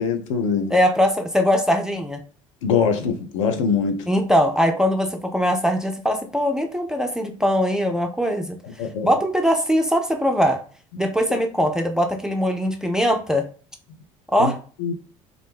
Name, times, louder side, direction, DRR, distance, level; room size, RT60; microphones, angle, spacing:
voice 1, 0.0-0.7 2.6-4.0 8.8-9.1 10.9-11.0 14.4-14.5 14.8-14.9, left 6 dB, 65° left, 0.4 m, -22 dB
voice 2, 0.7-2.2 4.1-8.6 9.0-10.6 11.0-13.5 14.3-14.6, equal, 5° right, 0.3 m, -21 dB
2.4 x 2.0 x 3.2 m
figure-of-eight pair, 60°, 17 cm